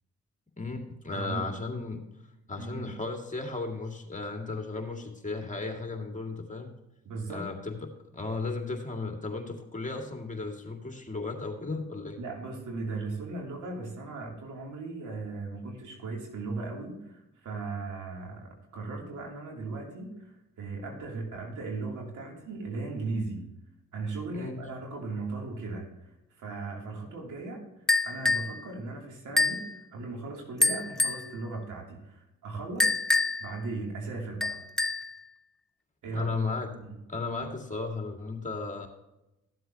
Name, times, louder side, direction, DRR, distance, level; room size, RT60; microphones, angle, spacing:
voice 1, 0.6-2.0 2.5-6.7 7.3-7.8 8.1-12.2 24.3-24.6 36.1-36.7 37.1-38.9, left 3 dB, 25° left, 3 dB, 2.1 m, -35 dB
voice 2, 1.1-1.4 2.6-2.9 7.0-7.5 12.2-23.4 23.9-27.6 28.0-33.0 33.4-34.6 36.0-36.4 36.7-37.0, right 3 dB, 75° right, 0 dB, 2.8 m, -37 dB
sound 1, 27.9-28.5 29.4-29.7 30.6-31.3 32.8-33.5 34.4-35.1, left 2 dB, ahead, 0.9 m, -26 dB
14.0 x 7.7 x 2.8 m, 0.92 s
supercardioid pair, 50°, 30 cm